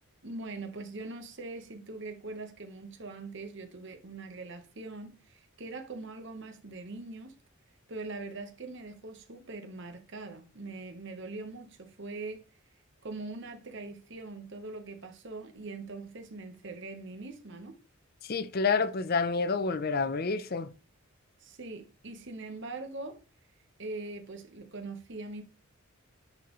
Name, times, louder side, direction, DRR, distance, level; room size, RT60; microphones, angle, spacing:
voice 1, 0.2-7.3 7.9-12.4 13.0-17.8 21.4-23.2 23.8-25.4, right 3 dB, 55° right, 1.1 m, -42 dB
voice 2, 18.3-20.7, left 4 dB, 45° left, 0.5 m, -28 dB
10.0 x 4.2 x 3.1 m
head